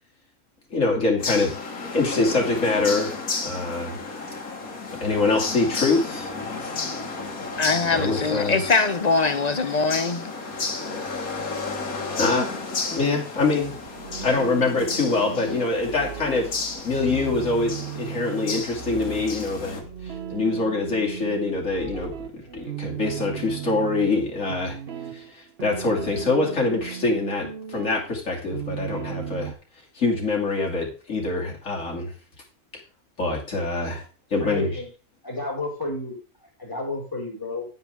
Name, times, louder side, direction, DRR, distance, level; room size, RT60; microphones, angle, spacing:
voice 1, 0.7-1.5 1.9-3.1 3.4-4.0 5.0-6.3 7.8-8.6 9.6-9.8 12.2-12.5 12.9-13.8 14.2-16.5 16.8-22.2 22.5-24.8 25.1-29.5 29.9-32.1 33.2-34.0 34.3-34.8, left 3 dB, 60° left, 2.9 m, -24 dB
sound 1, 1.2-19.8, left 4 dB, 80° left, 2.1 m, -33 dB
voice 2, 7.6-10.3, left 4 dB, 40° left, 0.7 m, -22 dB
sound 2, 13.6-29.5, right 10 dB, 50° right, 1.0 m, -36 dB
voice 3, 34.4-34.9 35.2-36.2 36.6-37.7, left 2 dB, 15° left, 4.6 m, -31 dB
9.7 x 9.5 x 3.5 m
omnidirectional pair, 1.5 m